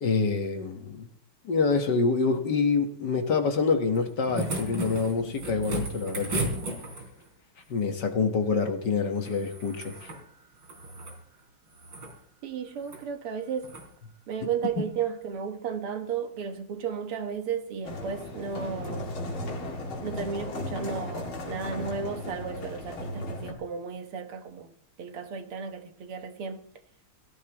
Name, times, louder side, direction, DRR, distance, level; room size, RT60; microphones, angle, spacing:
voice 1, 0.0-1.1 1.5-6.6 7.7-10.1, left 4 dB, 55° left, 1.9 m, -26 dB
sound 1, 4.0-7.3 9.2-10.2 10.6-11.2 11.7-12.1 12.8-13.0 13.6-13.9 15.2-15.3, right 2 dB, 60° right, 4.4 m, -35 dB
voice 2, 12.4-13.8 14.3-19.1 20.0-24.7 25.0-26.6, right 6 dB, 85° right, 2.3 m, -34 dB
sound 2, 17.8-23.5, left 1 dB, 70° left, 3.3 m, -36 dB
17.0 x 15.0 x 3.0 m
omnidirectional pair, 2.4 m